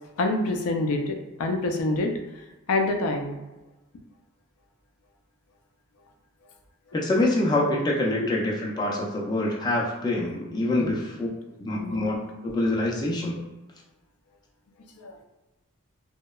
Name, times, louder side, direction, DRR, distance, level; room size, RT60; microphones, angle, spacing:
voice 1, 0.2-1.1 1.4-2.1 2.7-3.3 8.1-8.3 10.8-10.9 11.8-12.1 15.0-15.1, left 2 dB, 90° left, 3 dB, 0.4 m, -26 dB
voice 2, 6.9-11.3 11.6-12.2 12.4-13.3, left 1 dB, 20° left, -3 dB, 0.3 m, -25 dB
2.7 x 2.1 x 2.3 m, 1.0 s
head